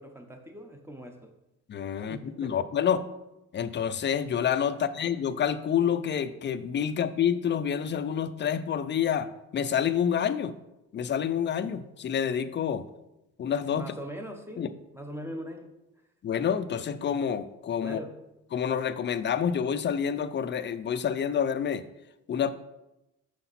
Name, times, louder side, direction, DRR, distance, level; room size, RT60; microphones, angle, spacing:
voice 1, 0.0-1.3 2.0-2.7 4.7-4.8 13.7-15.7 17.8-18.1, equal, 10° right, 5 dB, 0.9 m, -41 dB
voice 2, 1.7-3.1 3.5-10.5 10.9-12.8 13.4-13.9 14.6-14.7 16.2-18.0 18.5-21.8 22.3-22.5, left 8 dB, 40° left, 13 dB, 0.4 m, -28 dB
5.7 x 5.0 x 4.1 m, 0.93 s
cardioid pair, 90°, 30 cm